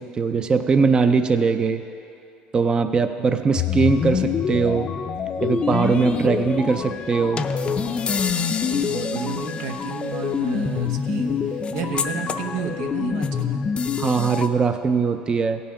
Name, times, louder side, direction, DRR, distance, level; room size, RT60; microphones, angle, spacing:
voice 1, 0.0-1.8 2.5-4.9 5.4-7.5 14.0-15.6, right 5 dB, 25° right, 8 dB, 0.4 m, -21 dB
sound 1, 3.6-14.5, left 6 dB, 35° left, 0.5 m, -25 dB
voice 2, 8.7-13.6, right 5 dB, 90° right, 4 dB, 1.0 m, -31 dB
16.0 x 5.5 x 5.7 m, 2.6 s
cardioid pair, 115°, 3 cm